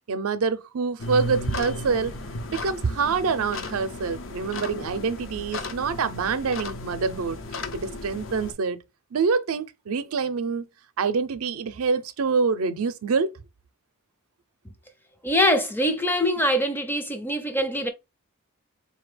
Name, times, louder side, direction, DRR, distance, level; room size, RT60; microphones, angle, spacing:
voice 1, 0.1-2.2 2.5-7.4 7.7-8.8 9.1-10.7 11.0-13.3, right 5 dB, 85° right, 0.5 m, -26 dB
sound 1, 1.0-8.5, left 2 dB, 65° left, 0.6 m, -35 dB
voice 2, 15.2-17.9, equal, 10° left, 0.4 m, -23 dB
4.1 x 2.8 x 3.1 m
head